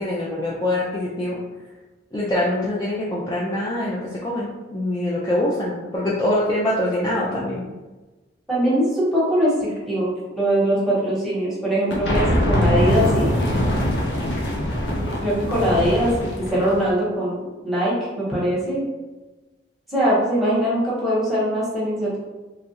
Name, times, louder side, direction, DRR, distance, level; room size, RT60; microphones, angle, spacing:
voice 1, 0.0-1.4 2.1-7.6, left 1 dB, 20° left, -6 dB, 0.4 m, -24 dB
voice 2, 8.5-13.6 15.2-16.1 16.5-18.8 19.9-22.2, equal, ahead, -8 dB, 1.0 m, -22 dB
sound 1, 11.9-16.9, left 1 dB, 70° left, 0.6 m, -22 dB
3.0 x 2.3 x 2.8 m, 1.2 s
head